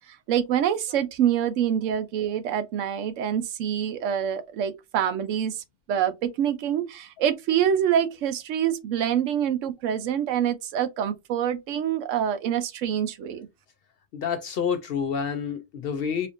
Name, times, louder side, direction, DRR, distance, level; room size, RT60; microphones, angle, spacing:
voice 1, 0.1-13.5, right 9 dB, 80° right, 0.9 m, -26 dB
voice 2, 14.1-16.3, left 7 dB, 60° left, 0.6 m, -28 dB
4.3 x 2.6 x 2.5 m
omnidirectional pair, 1.3 m